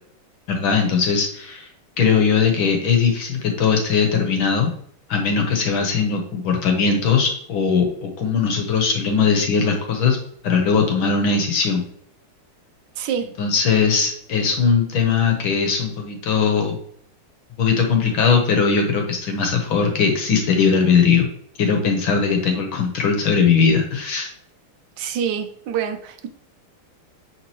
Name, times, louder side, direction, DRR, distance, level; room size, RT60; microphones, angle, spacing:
voice 1, 0.5-1.7 2.0-4.7 5.1-10.2 10.4-11.8 13.4-16.8 17.6-21.3 21.6-24.3, left 5 dB, 70° left, 3 dB, 1.9 m, -19 dB
voice 2, 12.9-13.3 25.0-26.3, right 8 dB, 65° right, 6 dB, 1.2 m, -26 dB
9.2 x 3.8 x 3.1 m, 0.65 s
omnidirectional pair, 2.4 m